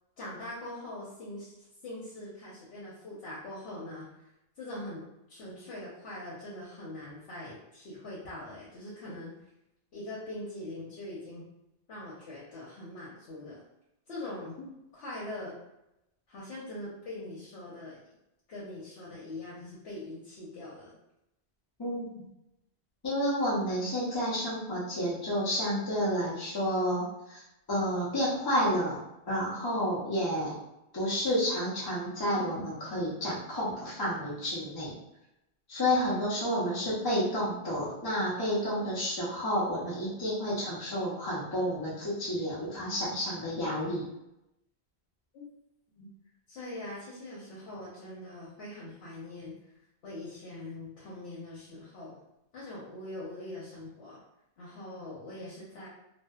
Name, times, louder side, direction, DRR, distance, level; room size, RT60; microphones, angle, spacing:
voice 1, 0.2-1.5 1.8-4.1 4.6-9.3 9.9-11.5 11.9-13.6 14.1-14.6 14.9-15.5 16.3-18.0 18.5-21.0 45.3-45.5 45.9-46.1 46.5-49.6 50.0-52.2 52.5-54.2 54.6-55.9, left 1 dB, 75° left, -7 dB, 0.9 m, -42 dB
voice 2, 21.8-22.2 23.0-27.4 27.7-29.0 29.3-30.6 30.9-34.9 35.7-44.0, equal, 30° left, -7 dB, 0.4 m, -30 dB
2.6 x 2.1 x 2.2 m, 0.88 s
omnidirectional pair, 1.1 m